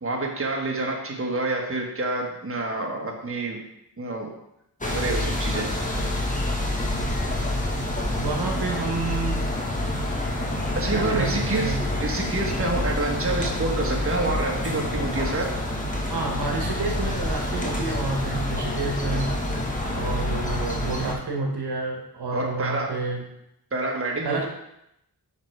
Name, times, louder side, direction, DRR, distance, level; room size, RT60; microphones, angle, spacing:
voice 1, 0.0-3.6 4.0-4.3 4.9-5.7 10.7-15.5 22.3-22.9 23.7-24.5, right 2 dB, 35° right, 0 dB, 1.5 m, -27 dB
sound 1, 4.8-21.1, left 1 dB, 20° left, 1.3 m, -27 dB
voice 2, 8.2-9.5 10.9-11.9 16.1-19.3 19.9-23.2 24.2-24.5, right 3 dB, 75° right, 1 dB, 1.3 m, -29 dB
6.1 x 5.7 x 4.6 m, 0.81 s
wide cardioid pair, 85°, 40 cm